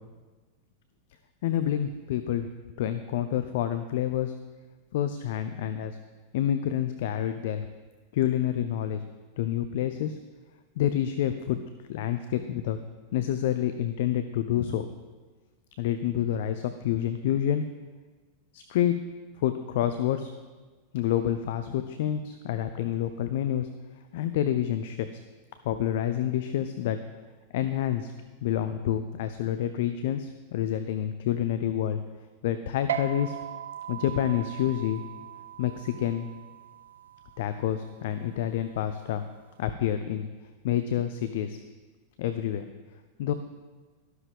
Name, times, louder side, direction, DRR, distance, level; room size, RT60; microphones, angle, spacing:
voice 1, 1.4-2.5 2.8-4.3 4.9-6.0 6.3-7.6 8.1-9.0 9.4-10.2 10.8-11.6 11.9-12.8 13.1-14.9 15.8-17.7 18.5-19.0 19.4-20.3 20.9-23.7 24.1-25.2 25.6-27.0 27.5-28.1 28.4-32.0 32.4-33.4 33.9-35.0 35.6-36.3 37.4-39.2 39.6-40.3 40.6-41.6 42.2-42.7 43.2-43.3, left 11 dB, 55° left, 10 dB, 0.5 m, -28 dB
sound 1, 32.9-39.7, right 10 dB, 65° right, 0.5 m, -39 dB
12.5 x 12.0 x 3.5 m, 1.3 s
figure-of-eight pair, 90°, 0 cm